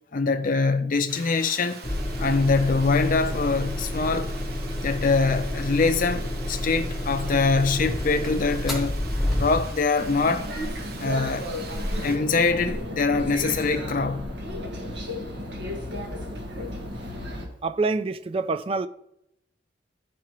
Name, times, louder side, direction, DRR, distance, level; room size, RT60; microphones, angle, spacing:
voice 1, 0.1-1.8 2.2-4.3 4.8-9.0 9.4-10.5 11.0-11.5 12.0-14.3, left 4 dB, 50° left, 0.6 m, -23 dB
Water, 1.1-12.2, right 4 dB, 60° right, 1.0 m, -43 dB
sound 1, 1.8-9.9, left 1 dB, ahead, 1.5 m, -29 dB
sound 2, 10.0-17.5, left 1 dB, 80° right, 1.6 m, -33 dB
voice 2, 17.6-18.9, right 3 dB, 35° right, 0.4 m, -26 dB
11.5 x 4.8 x 3.1 m
head